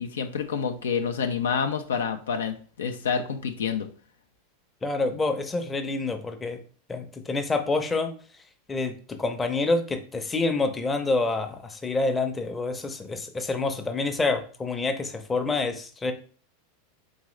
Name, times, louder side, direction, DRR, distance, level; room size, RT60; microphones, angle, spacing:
voice 1, 0.0-3.9, left 6 dB, 75° left, 7 dB, 0.5 m, -28 dB
voice 2, 4.8-6.6 6.9-8.1 8.7-16.1, left 3 dB, 15° left, 6 dB, 0.7 m, -27 dB
3.7 x 3.6 x 3.2 m, 0.42 s
hypercardioid pair, 90°, 0 cm